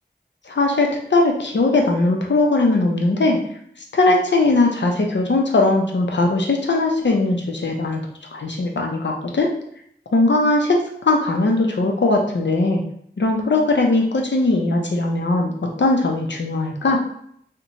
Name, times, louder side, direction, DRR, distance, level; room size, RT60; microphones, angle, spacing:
voice 1, 0.5-3.4 3.9-8.0 8.3-9.5 10.1-12.8 13.2-15.5 15.8-17.0, left 2 dB, 80° left, 1 dB, 0.5 m, -19 dB
2.8 x 2.1 x 2.5 m, 0.68 s
wide cardioid pair, 40°, 18 cm